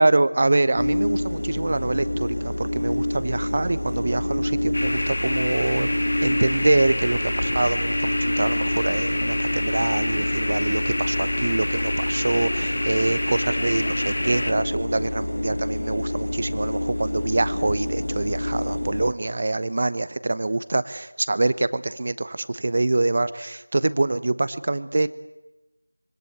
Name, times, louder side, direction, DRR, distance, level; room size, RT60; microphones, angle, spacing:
voice 1, 0.0-5.9 6.2-25.1, right 2 dB, 25° right, 15 dB, 0.9 m, -25 dB
sound 1, 0.8-19.1, left 1 dB, 70° left, 1.5 m, -27 dB
sound 2, 4.7-14.5, left 1 dB, 40° left, 2.4 m, -29 dB
26.5 x 25.0 x 8.3 m, 0.98 s
figure-of-eight pair, 175°, 0 cm